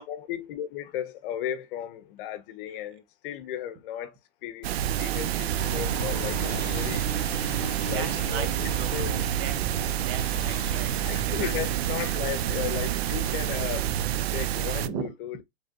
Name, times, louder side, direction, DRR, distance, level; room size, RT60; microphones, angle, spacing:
voice 1, 0.0-4.1 4.4-7.1 7.4-7.5 7.9-9.2 11.0-13.9 14.3-15.4, left 11 dB, 55° left, 0.8 m, -35 dB
voice 2, 2.7-3.0 7.9-11.0 11.2-11.5 14.8-15.1, right 6 dB, 35° right, 1.1 m, -38 dB
sound 1, 4.6-14.9, right 11 dB, 70° right, 0.6 m, -28 dB
sound 2, 5.6-11.7, left 10 dB, 25° left, 0.3 m, -41 dB
4.9 x 3.3 x 2.7 m
hypercardioid pair, 115°, 32 cm